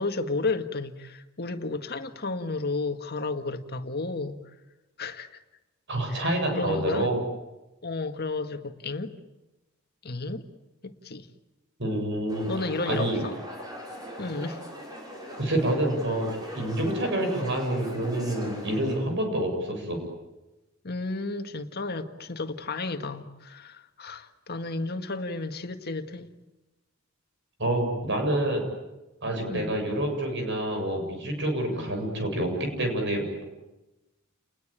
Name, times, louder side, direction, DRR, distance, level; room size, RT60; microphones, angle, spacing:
voice 1, 0.0-4.4 5.0-5.4 6.1-7.1 7.8-9.2 10.0-10.5 10.8-11.3 12.4-13.4 14.2-14.6 20.8-26.3 29.5-29.7 31.7-31.9, left 3 dB, 50° left, 7 dB, 1.8 m, -32 dB
voice 2, 5.9-7.2 11.8-12.5 12.8-13.2 15.4-20.0 27.6-28.6 29.2-33.4, right 1 dB, 60° right, 3 dB, 7.6 m, -27 dB
sound 1, 12.3-19.0, equal, 20° right, 7.0 m, -40 dB
30.0 x 20.5 x 9.0 m, 1.0 s
head